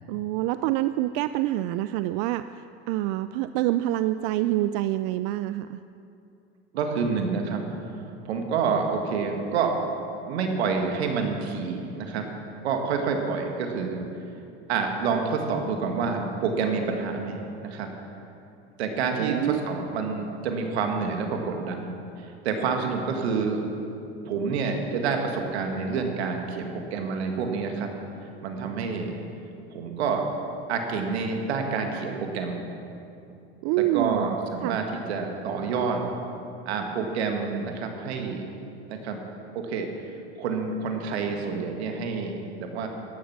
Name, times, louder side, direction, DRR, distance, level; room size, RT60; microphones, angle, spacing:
voice 1, 0.1-2.4 2.9-5.8 19.2-19.6 33.6-34.4 34.6-34.8, right 15 dB, 65° right, 12 dB, 0.5 m, -26 dB
voice 2, 6.7-7.6 8.3-9.7 10.3-12.3 12.6-14.0 14.7-17.9 18.8-21.9 22.2-23.6 24.3-27.9 28.4-29.2 29.7-30.2 30.7-32.7 33.8-36.0 36.7-38.5 38.9-39.2 39.6-39.9 40.4-42.9, right 5 dB, 85° right, 3 dB, 1.9 m, -28 dB
14.0 x 11.0 x 6.0 m, 2.7 s
hypercardioid pair, 85°, 32 cm